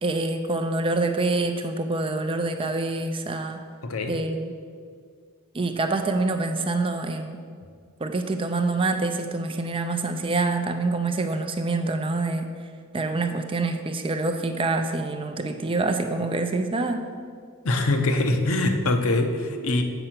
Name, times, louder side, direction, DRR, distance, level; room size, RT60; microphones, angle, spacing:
voice 1, 0.0-3.6 4.1-4.5 5.5-7.4 8.0-12.5 12.9-17.0, right 3 dB, 25° right, 6 dB, 0.4 m, -26 dB
voice 2, 3.8-4.2 17.6-19.8, left 2 dB, 65° left, 5 dB, 0.8 m, -23 dB
7.9 x 5.5 x 5.8 m, 2.1 s
head